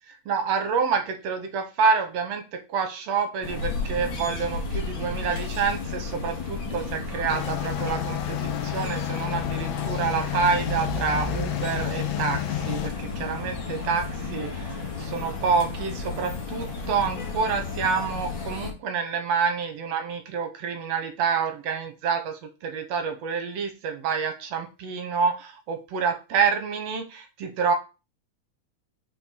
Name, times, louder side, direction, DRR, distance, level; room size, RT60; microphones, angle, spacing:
voice 1, 0.3-27.7, right 5 dB, 70° right, 6 dB, 2.1 m, -28 dB
sound 1, 3.4-18.7, left 4 dB, 45° left, 2.3 m, -33 dB
sound 2, 7.3-12.9, left 13 dB, 75° left, 1.9 m, -31 dB
5.9 x 5.2 x 5.2 m, 0.30 s
omnidirectional pair, 3.3 m